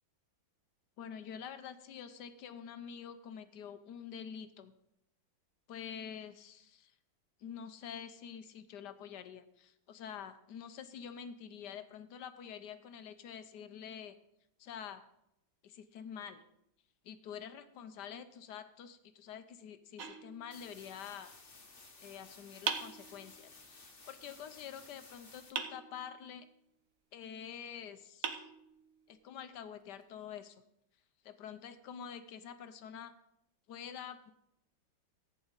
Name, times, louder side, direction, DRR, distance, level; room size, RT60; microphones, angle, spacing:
voice 1, 1.0-4.7 5.7-6.9 7.4-14.2 14.6-15.0 15.6-16.4 17.0-21.5 22.0-26.5 27.1-28.4 29.1-30.6 31.2-33.1 33.7-34.3, left 8 dB, 70° left, 11 dB, 1.2 m, -47 dB
sound 1, 20.0-21.0 22.7-23.7 25.6-26.5 27.6-27.7 28.2-29.2, right 6 dB, 55° right, 1.1 m, -41 dB
sound 2, 20.5-25.5, left 3 dB, 30° left, 1.3 m, -56 dB
14.5 x 9.1 x 3.9 m, 0.81 s
omnidirectional pair, 2.1 m